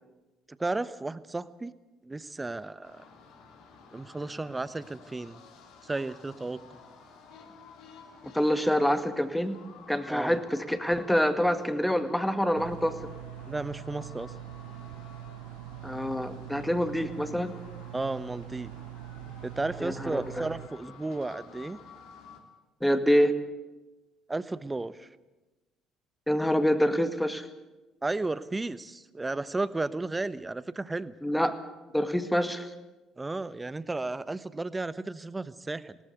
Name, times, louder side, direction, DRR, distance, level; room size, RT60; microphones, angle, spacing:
voice 1, 0.5-1.7 2.0-3.0 3.9-5.4 5.8-6.8 10.1-10.4 13.4-14.3 17.9-18.7 19.2-21.8 24.3-25.1 28.0-31.1 33.2-36.0, right 2 dB, 20° right, 16 dB, 1.0 m, -34 dB
sound 1, 2.8-22.4, left 5 dB, 65° left, 3.1 m, -52 dB
voice 2, 8.2-9.6 9.9-13.0 15.8-17.5 19.8-20.4 22.8-23.3 26.3-27.5 31.2-31.6 31.9-32.7, equal, 5° left, 9 dB, 2.0 m, -26 dB
sound 2, 12.6-20.7, right 14 dB, 75° right, 0.6 m, -43 dB
19.5 x 18.0 x 8.2 m, 1.1 s
hypercardioid pair, 55°, 0 cm